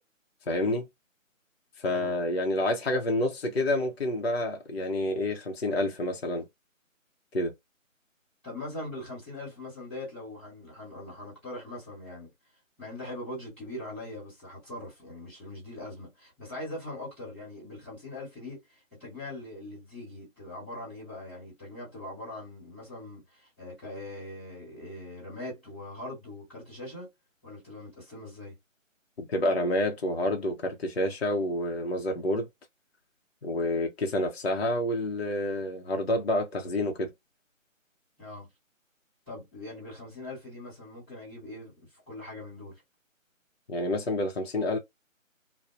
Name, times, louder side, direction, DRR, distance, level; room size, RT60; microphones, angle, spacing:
voice 1, 0.5-0.9 1.8-6.4 7.3-7.5 29.2-32.5 33.4-37.1 43.7-44.8, left 1 dB, 50° left, 0.6 m, -28 dB
voice 2, 1.9-2.2 8.4-12.3 12.8-27.1 27.4-28.6 38.2-38.5 39.3-42.8, left 1 dB, 10° left, 1.0 m, -41 dB
2.7 x 2.0 x 2.3 m
figure-of-eight pair, 165°, 40 cm